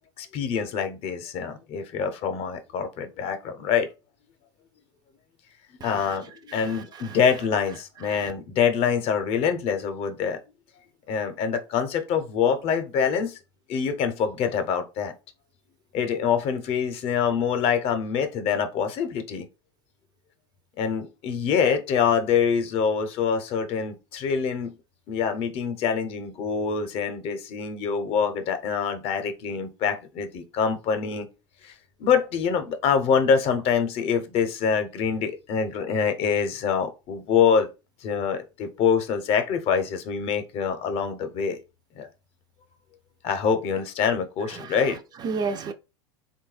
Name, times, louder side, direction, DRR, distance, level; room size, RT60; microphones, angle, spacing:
voice 1, 0.2-3.9 5.8-10.4 11.1-13.4 13.7-15.1 15.9-19.5 20.8-24.7 25.1-31.3 31.6-31.7 32.0-37.7 38.0-41.6 41.9-42.1 43.2-45.0, left 6 dB, 45° left, 0.6 m, -25 dB
voice 2, 5.8-6.2 6.5-7.2 8.0-8.3 44.5-45.7, right 4 dB, 30° right, 0.4 m, -34 dB
3.3 x 2.2 x 3.2 m
hypercardioid pair, 95°, 14 cm